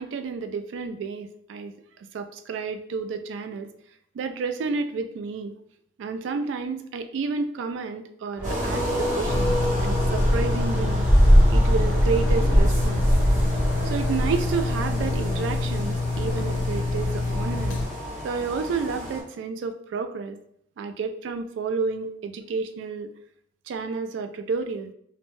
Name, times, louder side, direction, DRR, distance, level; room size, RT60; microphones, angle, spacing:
voice 1, 0.0-3.7 4.1-5.5 6.0-11.1 11.5-13.1 13.8-17.8 18.2-20.4 20.8-23.1 23.7-24.9, right 4 dB, 80° right, 8 dB, 0.3 m, -30 dB
sound 1, 8.4-15.1, equal, 5° right, 0.5 m, -22 dB
sound 2, 8.4-19.2, equal, 45° right, 0.8 m, -32 dB
sound 3, 9.3-17.8, left 2 dB, 75° left, 0.4 m, -27 dB
3.2 x 2.1 x 2.5 m, 0.69 s
head